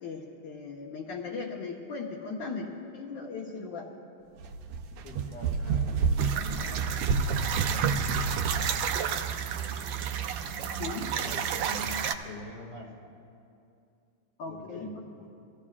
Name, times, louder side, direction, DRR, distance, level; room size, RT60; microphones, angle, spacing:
voice 1, 0.0-3.9 5.6-5.7 10.8-11.1 14.4-15.0, left 4 dB, 60° left, -3 dB, 1.8 m, -38 dB
sound 1, 4.4-8.7, right 5 dB, 85° right, 1.7 m, -29 dB
voice 2, 5.0-8.6 9.1-9.3 11.1-13.1 14.4-14.9 15.2-15.3, left 2 dB, 85° left, -2 dB, 3.2 m, -45 dB
sound 2, 6.2-12.1, right 8 dB, 70° right, 1.2 m, -31 dB
25.0 x 15.0 x 2.4 m, 2.5 s
omnidirectional pair, 2.4 m